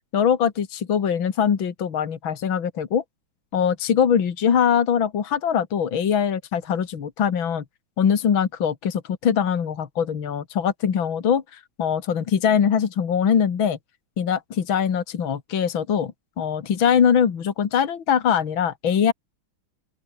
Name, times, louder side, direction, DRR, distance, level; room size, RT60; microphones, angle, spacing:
voice 1, 0.1-3.0 3.5-7.6 8.0-13.8 14.2-19.1, left 7 dB, 65° left, 2.7 m, -22 dB
open air
omnidirectional pair, 2.3 m